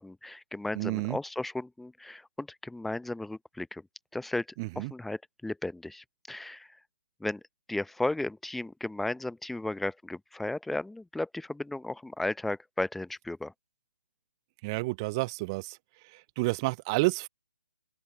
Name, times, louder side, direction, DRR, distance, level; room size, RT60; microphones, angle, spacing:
voice 1, 0.0-3.9 4.1-4.5 4.8-6.8 7.2-7.4 7.7-13.5, left 2 dB, ahead, 0.7 m, -35 dB
voice 2, 0.8-1.2 4.6-4.9 14.6-15.8 16.4-17.3, right 24 dB, 20° right, 0.3 m, -29 dB
open air
figure-of-eight pair, 135°, 7 cm